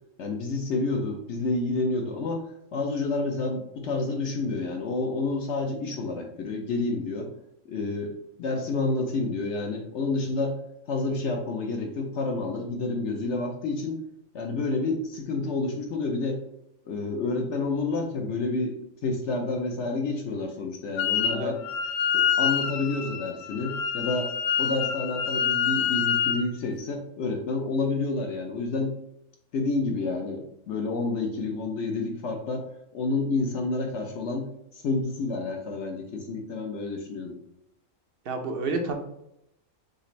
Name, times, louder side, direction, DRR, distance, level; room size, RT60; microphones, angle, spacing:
voice 1, 0.2-7.3 7.7-8.1 8.4-10.6 10.9-14.0 14.3-16.4 16.9-18.7 19.0-21.6 22.1-28.9 29.5-32.7 32.9-34.5 34.7-37.4, left 3 dB, 60° left, 3 dB, 0.8 m, -29 dB
Wind instrument woodwind instrument, 21.0-21.4 21.6-26.5, left 8 dB, 85° left, 1.1 m, -26 dB
voice 2, 38.3-38.9, right 3 dB, 55° right, 4 dB, 0.6 m, -29 dB
6.5 x 2.5 x 3.1 m, 0.79 s
omnidirectional pair, 1.5 m